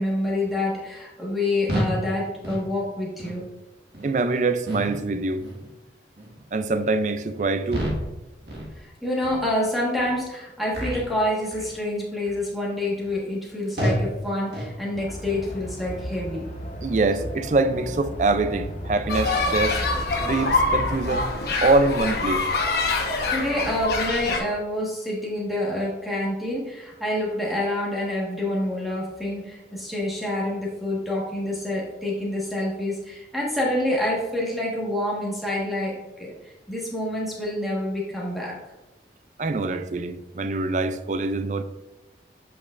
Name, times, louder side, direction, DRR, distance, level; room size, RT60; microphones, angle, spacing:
voice 1, 0.0-3.4 8.8-16.5 23.3-38.6, left 1 dB, ahead, 1.4 m, -27 dB
sound 1, 1.7-2.0 2.4-2.7 3.2-3.4 3.9-4.1 4.7-5.0 5.4-5.7 6.2-6.4 6.9-7.1 7.7-8.1 8.5-8.8 9.2-9.4 10.0-10.1 10.7-11.1 11.5-11.8 12.3-12.5 13.0-13.1 13.8-14.1 14.5-14.8, equal, 65° right, 1.6 m, -29 dB
voice 2, 4.0-5.5 6.5-7.9 16.8-19.8 20.2-21.3 21.6-22.5 39.4-41.6, right 3 dB, 40° right, 0.4 m, -24 dB
sound 2, 15.0-21.2, equal, 40° left, 0.7 m, -35 dB
sound 3, 19.1-24.4, left 3 dB, 60° left, 1.0 m, -25 dB
8.3 x 5.9 x 2.5 m
head